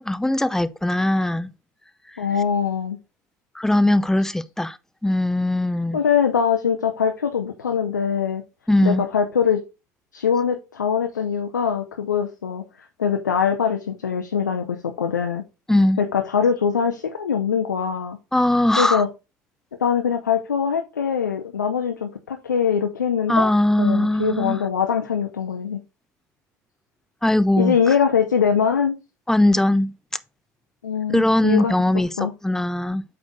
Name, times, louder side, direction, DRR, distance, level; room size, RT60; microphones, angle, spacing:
voice 1, 0.0-1.5 3.5-4.8 5.0-6.0 8.7-9.0 15.7-16.0 18.3-19.0 23.3-24.6 27.2-27.8 29.3-29.9 31.1-33.0, left 1 dB, 5° left, 0.5 m, -20 dB
voice 2, 2.2-3.0 5.9-8.4 8.8-9.6 10.1-12.6 13.0-15.4 16.0-18.2 18.8-19.1 19.8-23.5 23.8-25.8 27.6-29.0 30.8-31.8 32.2-32.3, left 7 dB, 80° left, 0.6 m, -22 dB
8.2 x 3.4 x 3.9 m
figure-of-eight pair, 70°, 10 cm